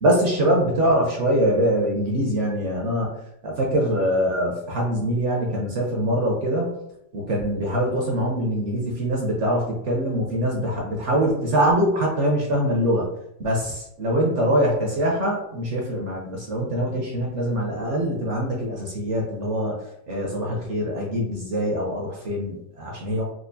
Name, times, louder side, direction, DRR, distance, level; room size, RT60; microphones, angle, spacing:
voice 1, 0.0-3.1 3.4-6.7 7.1-13.0 13.4-19.7 20.1-23.2, equal, 60° right, -2 dB, 0.8 m, -23 dB
4.4 x 2.4 x 2.6 m, 0.78 s
omnidirectional pair, 1.9 m